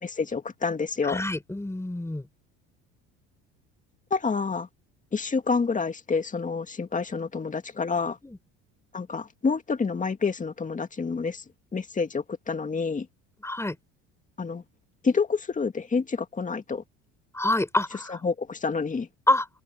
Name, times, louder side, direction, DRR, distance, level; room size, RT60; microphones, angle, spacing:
voice 1, 0.0-1.2 4.1-4.7 5.1-8.2 8.9-11.4 11.7-13.1 14.4-14.6 15.0-16.8 18.1-19.1, left 4 dB, 25° left, 2.2 m, -28 dB
voice 2, 1.0-2.3 8.2-8.4 13.4-13.8 17.3-18.2 19.3-19.6, left 1 dB, 10° left, 5.3 m, -27 dB
open air
supercardioid pair, 90°, 32 cm